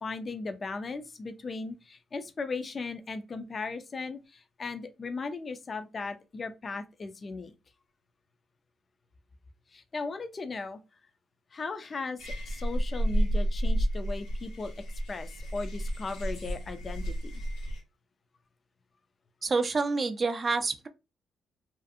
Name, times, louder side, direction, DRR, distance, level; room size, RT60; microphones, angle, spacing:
voice 1, 0.0-7.5 9.7-10.8 11.5-14.7 15.1-17.4, left 3 dB, 35° left, 0.4 m, -37 dB
sound 1, 12.2-17.8, equal, 90° left, 0.9 m, -31 dB
voice 2, 19.4-20.9, right 4 dB, 35° right, 0.4 m, -28 dB
2.4 x 2.4 x 2.5 m
cardioid pair, 90°, 0 cm